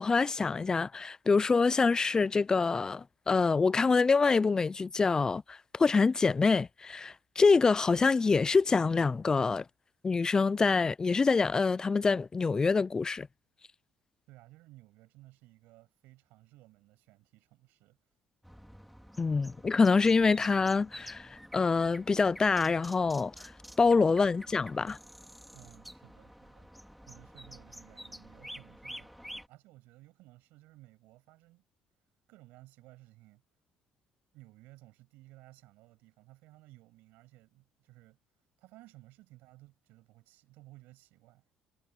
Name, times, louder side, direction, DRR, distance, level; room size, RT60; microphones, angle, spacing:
voice 1, 0.0-9.6 10.0-13.3 19.2-23.5 23.8-25.0, left 4 dB, 25° left, 0.3 m, -26 dB
voice 2, 14.3-18.0 25.5-31.6 32.3-33.4 34.3-38.2 38.6-41.4, right 19 dB, 85° right, 7.6 m, -57 dB
sound 1, 18.4-29.5, equal, ahead, 4.2 m, -50 dB
cardioid pair, 100°, 3 cm